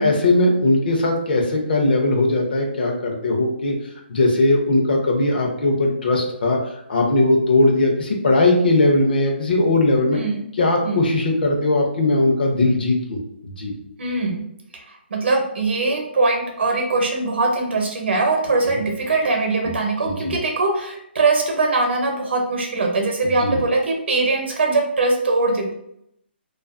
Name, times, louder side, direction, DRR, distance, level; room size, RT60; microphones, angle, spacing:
voice 1, 0.0-3.8 4.1-6.6 6.9-10.2 10.6-13.2 13.4-13.7 20.0-20.3 23.4-23.6, left 2 dB, 55° left, 1 dB, 0.6 m, -19 dB
voice 2, 10.1-10.4 10.8-11.0 14.0-14.4 14.7-25.7, right 3 dB, 70° right, 2 dB, 0.8 m, -21 dB
2.4 x 2.4 x 2.4 m, 0.76 s
hypercardioid pair, 170°, 6 cm